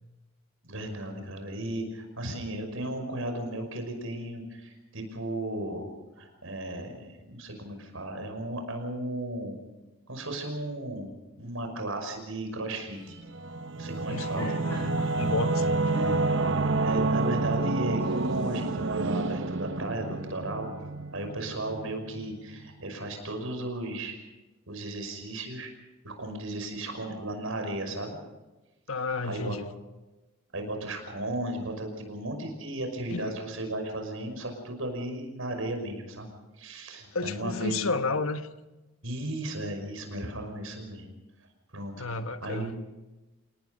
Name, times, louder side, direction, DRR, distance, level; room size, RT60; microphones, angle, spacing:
voice 1, 0.6-5.9 6.1-9.6 10.1-11.1 11.4-13.0 13.8-14.7 16.8-20.7 21.1-24.2 24.7-25.7 26.0-28.2 29.2-29.6 30.5-36.3 36.6-37.8 39.0-41.1 41.7-41.9 42.4-42.7, right 1 dB, 75° right, 5 dB, 5.7 m, -35 dB
Singing / Musical instrument, 13.2-22.4, right 3 dB, 60° right, 0.8 m, -29 dB
Laughter, 14.0-19.1, left 1 dB, 10° left, 7.3 m, -44 dB
voice 2, 14.1-15.9 28.9-29.7 33.1-33.4 37.1-38.5 41.9-42.7, left 3 dB, 80° left, 9 dB, 1.3 m, -32 dB
28.0 x 19.0 x 5.4 m, 1.1 s
head